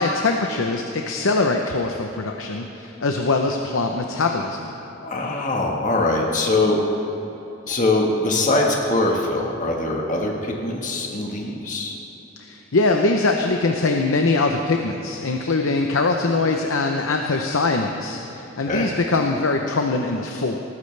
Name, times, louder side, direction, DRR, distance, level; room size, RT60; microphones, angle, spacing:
voice 1, 0.0-4.7 12.4-20.6, left 3 dB, 85° left, 3 dB, 0.8 m, -22 dB
voice 2, 5.0-6.8 7.7-11.9 18.7-18.9, left 2 dB, 40° left, 0 dB, 1.5 m, -22 dB
19.0 x 15.0 x 3.4 m, 3.0 s
head